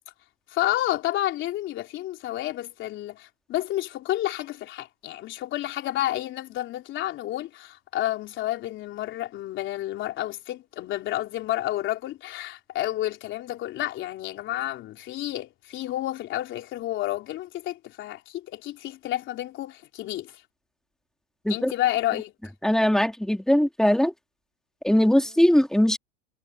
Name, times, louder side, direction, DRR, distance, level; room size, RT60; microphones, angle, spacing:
voice 1, 0.5-20.4 21.5-22.3, left 14 dB, 35° left, 3.8 m, -30 dB
voice 2, 22.6-24.1 24.8-26.0, left 1 dB, ahead, 2.6 m, -20 dB
supercardioid pair, 145°, 35 cm